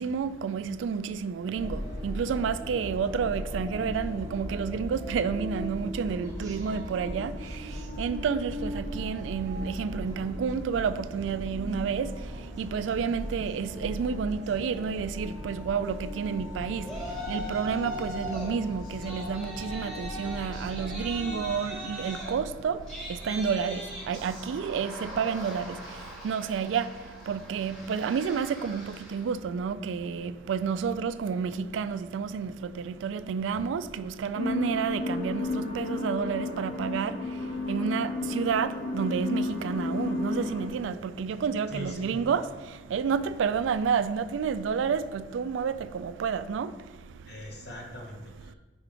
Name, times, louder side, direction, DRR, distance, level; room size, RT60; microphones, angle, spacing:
voice 1, 0.0-47.8 48.5-48.6, right 6 dB, 85° right, 0.3 m, -30 dB
sound 1, 1.5-21.5, equal, 20° right, 1.0 m, -38 dB
Yell, 16.8-18.5 18.8-29.3, equal, 5° left, 1.5 m, -40 dB
sound 2, 34.3-40.7, left 2 dB, 85° left, 1.6 m, -32 dB
voice 2, 41.7-42.2 47.3-48.5, equal, 60° left, 1.2 m, -41 dB
4.9 x 4.6 x 5.0 m
head